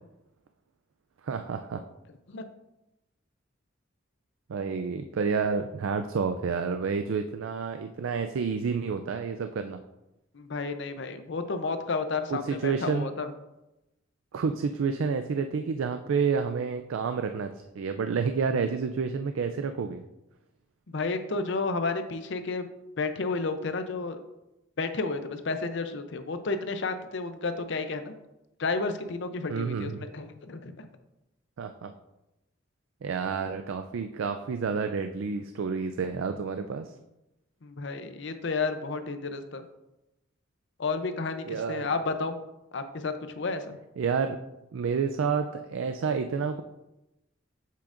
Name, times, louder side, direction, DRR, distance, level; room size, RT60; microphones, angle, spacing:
voice 1, 1.2-1.8 4.5-9.8 12.3-13.1 14.3-20.0 29.5-30.1 31.6-31.9 33.0-36.9 41.5-41.9 44.0-44.4 44.7-46.6, right 5 dB, 80° right, 8 dB, 0.4 m, -29 dB
voice 2, 10.3-13.3 20.9-22.7 23.0-24.2 24.8-28.1 28.6-30.9 37.6-39.6 40.8-42.4 42.7-43.8, left 3 dB, 60° left, 9 dB, 0.6 m, -31 dB
7.5 x 7.0 x 2.5 m, 0.93 s
head